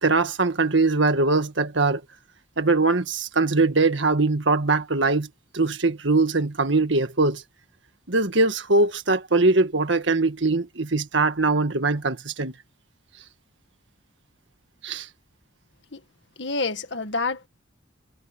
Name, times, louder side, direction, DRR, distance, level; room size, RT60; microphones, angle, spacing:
voice 1, 0.0-2.0 2.6-5.3 5.5-7.4 8.1-12.5 14.8-15.1, right 3 dB, 70° right, 1.7 m, -21 dB
voice 2, 16.4-17.5, left 3 dB, 60° left, 2.0 m, -28 dB
head